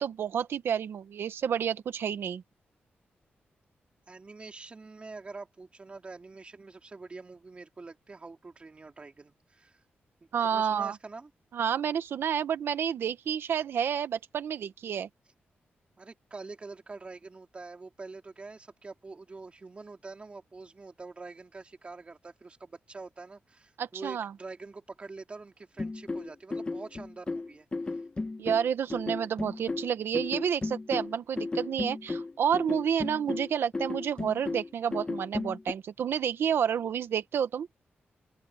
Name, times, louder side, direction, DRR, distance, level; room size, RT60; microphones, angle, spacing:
voice 1, 0.0-2.4 10.3-11.0 11.5-15.1 23.8-24.3 28.4-37.7, right 8 dB, 85° right, 1.3 m, -30 dB
voice 2, 4.1-9.8 10.4-11.3 16.0-28.0 33.0-33.1, right 3 dB, 30° right, 3.2 m, -45 dB
sound 1, 25.8-35.7, left 3 dB, 25° left, 1.5 m, -34 dB
open air
wide cardioid pair, 135°, 4 cm